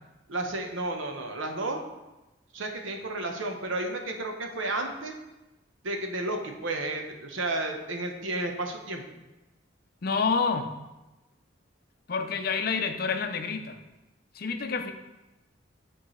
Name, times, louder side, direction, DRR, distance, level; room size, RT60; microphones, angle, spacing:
voice 1, 0.3-1.8 2.5-5.1 5.8-9.0, right 2 dB, 85° right, 3 dB, 0.9 m, -32 dB
voice 2, 10.0-10.7 12.1-13.8 14.3-14.9, left 5 dB, 50° left, 7 dB, 0.5 m, -28 dB
10.0 x 4.6 x 3.1 m, 1.0 s
head